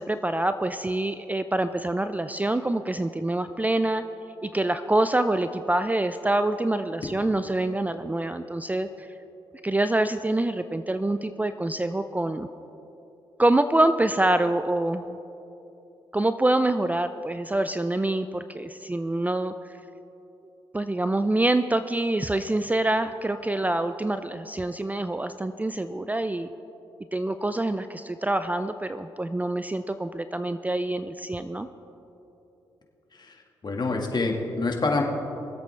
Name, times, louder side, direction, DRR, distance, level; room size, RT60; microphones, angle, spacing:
voice 1, 0.0-4.0 4.4-9.1 9.6-12.5 13.4-15.2 16.1-19.5 20.7-26.5 27.1-31.7, right 2 dB, 15° right, 10 dB, 0.5 m, -26 dB
voice 2, 33.6-35.0, left 3 dB, 40° left, 1 dB, 2.0 m, -26 dB
23.5 x 8.1 x 3.4 m, 3.0 s
hypercardioid pair, 45°, 11 cm